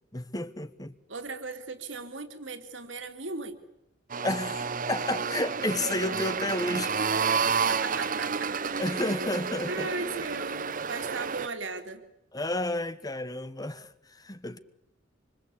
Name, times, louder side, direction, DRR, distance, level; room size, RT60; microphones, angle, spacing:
voice 1, 0.1-0.9 4.2-6.9 8.8-9.9 12.3-14.6, left 1 dB, 20° left, 1.1 m, -31 dB
voice 2, 1.1-3.6 7.7-8.5 8.9-9.2 9.7-12.0, right 3 dB, 85° right, 3.0 m, -37 dB
sound 1, 4.1-11.5, right 5 dB, 45° right, 1.0 m, -30 dB
26.5 x 25.0 x 8.5 m
head